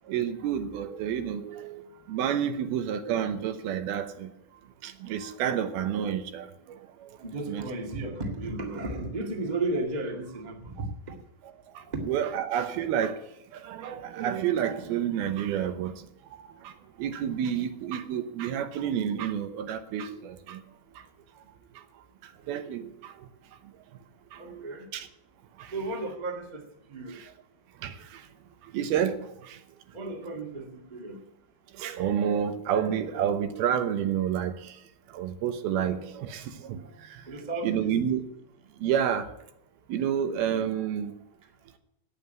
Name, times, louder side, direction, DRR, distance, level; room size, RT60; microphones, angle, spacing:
voice 1, 0.0-4.3 4.8-7.2 7.5-7.7 11.7-13.2 13.5-20.6 21.0-21.1 21.7-21.8 22.2-23.7 24.3-25.1 25.6-25.7 27.8-28.3 28.6-29.6 31.7-34.8 35.1-37.3 37.6-38.2 38.8-39.4 39.9-41.1, right 9 dB, 75° right, 9 dB, 2.8 m, -30 dB
voice 2, 7.2-11.1 11.9-12.0 24.4-24.9 25.7-26.6 26.9-27.2 29.9-31.2 37.3-37.9, right 2 dB, 45° right, 2 dB, 0.5 m, -34 dB
9.3 x 8.9 x 9.3 m, 0.81 s
omnidirectional pair, 4.6 m